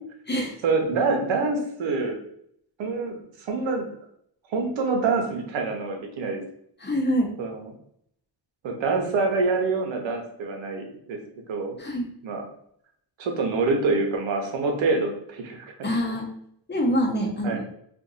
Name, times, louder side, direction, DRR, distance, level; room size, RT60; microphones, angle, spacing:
voice 1, 0.6-2.2 2.8-3.9 4.5-6.4 7.4-7.7 8.6-11.2 11.5-11.8 12.2-12.4 13.2-15.7 17.4-17.6, right 3 dB, 75° right, 3 dB, 0.9 m, -26 dB
voice 2, 6.8-7.3 11.8-12.1 15.8-16.3 16.7-17.6, equal, 20° left, 0 dB, 0.9 m, -25 dB
2.6 x 2.6 x 3.9 m, 0.68 s
cardioid pair, 80°, 46 cm